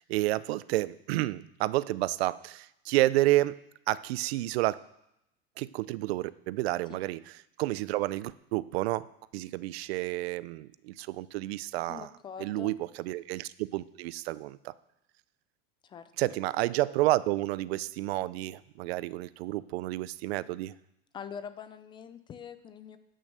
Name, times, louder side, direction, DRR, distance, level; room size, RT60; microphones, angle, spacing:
voice 1, 0.0-3.6 3.9-4.8 5.6-9.1 9.3-12.1 12.4-14.7 16.2-20.7, right 17 dB, 90° right, 19 dB, 0.5 m, -30 dB
voice 2, 11.9-12.8 15.8-16.3 21.1-23.0, left 7 dB, 15° left, 11 dB, 0.3 m, -44 dB
10.5 x 6.4 x 6.8 m, 0.82 s
supercardioid pair, 160°, 30 cm